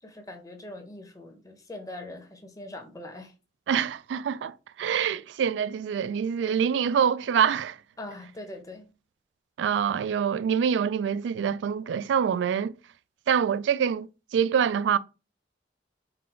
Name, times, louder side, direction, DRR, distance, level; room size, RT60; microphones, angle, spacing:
voice 1, 0.0-3.3 8.0-8.9, left 1 dB, 20° left, 0.8 m, -42 dB
voice 2, 3.7-7.8 9.6-12.7 13.3-14.1 14.3-15.0, right 7 dB, 85° right, 0.3 m, -25 dB
3.9 x 2.5 x 4.3 m
head